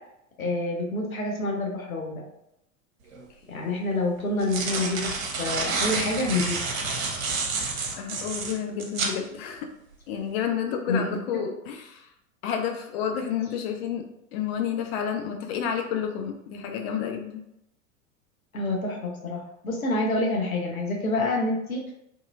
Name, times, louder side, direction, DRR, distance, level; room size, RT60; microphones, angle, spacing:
voice 1, 0.4-2.2 3.5-6.6 10.9-11.4 18.5-21.9, left 2 dB, 85° left, 0 dB, 0.7 m, -27 dB
sound 1, 3.1-3.2 4.2-9.2, right 4 dB, 75° right, 0.6 m, -29 dB
voice 2, 8.0-9.7 10.1-12.1 12.4-14.0 14.3-17.4, left 8 dB, 50° left, 4 dB, 0.5 m, -30 dB
2.7 x 2.5 x 2.3 m, 0.82 s
figure-of-eight pair, 85°, 41 cm